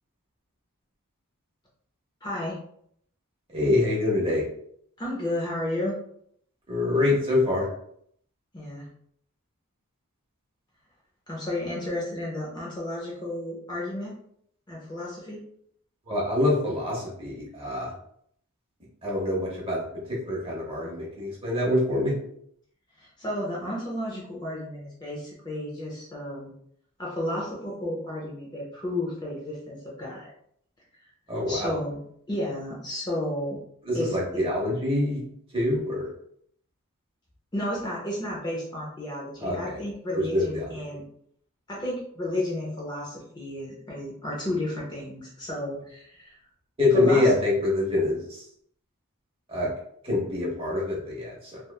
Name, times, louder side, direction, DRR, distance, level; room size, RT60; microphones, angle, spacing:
voice 1, 2.2-2.6 5.0-6.0 8.5-8.9 11.3-14.1 14.7-15.4 23.0-26.5 27.0-30.3 31.5-32.0 32.3-33.6 33.9-34.2 37.5-41.0 41.7-46.4 46.9-47.3, left 1 dB, 20° left, -4 dB, 0.5 m, -32 dB
voice 2, 3.5-4.4 6.7-7.7 16.1-17.9 19.0-19.8 20.1-22.1 31.3-31.8 33.8-35.2 35.5-36.1 39.4-39.8 40.1-40.7 46.8-48.4 49.5-49.7 50.0-51.6, left 2 dB, 25° right, -4 dB, 0.8 m, -25 dB
3.0 x 2.2 x 2.2 m, 0.68 s
head